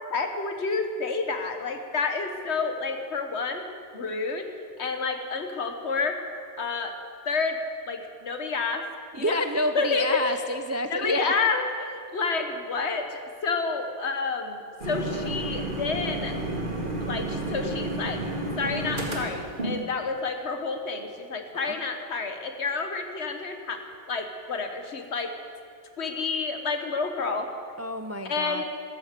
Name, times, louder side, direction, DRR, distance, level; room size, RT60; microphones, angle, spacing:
voice 1, 0.1-3.6 3.9-4.5 4.8-6.2 6.6-6.9 7.3-7.6 7.9-8.8 9.1-9.4 9.7-10.4 10.9-16.4 17.0-18.2 18.6-23.8 24.1-25.4 26.0-27.5 28.2-28.6, left 4 dB, 70° left, 6 dB, 1.5 m, -29 dB
voice 2, 9.1-11.5 21.6-21.8 27.8-28.6, equal, 25° right, 8 dB, 0.4 m, -29 dB
sound 1, 14.8-19.8, right 1 dB, 45° right, 2.1 m, -31 dB
14.0 x 13.0 x 6.7 m, 2.4 s
omnidirectional pair, 1.2 m